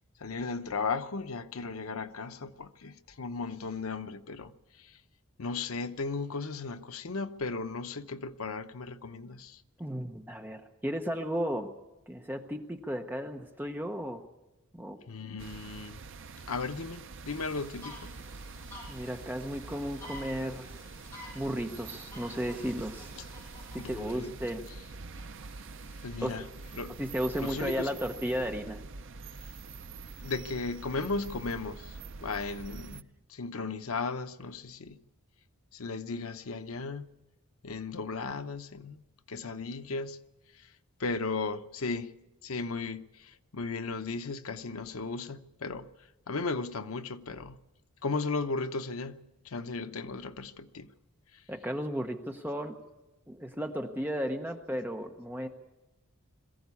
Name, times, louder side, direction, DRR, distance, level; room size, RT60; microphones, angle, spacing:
voice 1, 0.2-5.0 5.4-9.6 15.1-16.0 16.5-18.1 23.8-24.3 26.0-26.4 26.7-27.0 27.4-27.9 30.2-35.0 35.7-37.1 37.6-39.0 39.3-40.2 40.5-40.7 41.0-42.1 42.4-45.9 46.3-47.6 48.0-49.2 49.4-50.9 51.3-51.4, left 4 dB, 75° left, 0.8 m, -36 dB
voice 2, 9.8-11.7 12.1-14.2 14.7-15.0 18.9-20.7 21.3-23.1 23.7-24.6 26.2-26.4 26.9-28.8 51.5-52.8 53.3-55.5, equal, 10° right, 0.9 m, -34 dB
sound 1, 15.4-33.0, right 4 dB, 60° right, 0.6 m, -45 dB
sound 2, 17.3-23.9, left 1 dB, 10° left, 6.7 m, -50 dB
22.0 x 15.0 x 8.4 m
head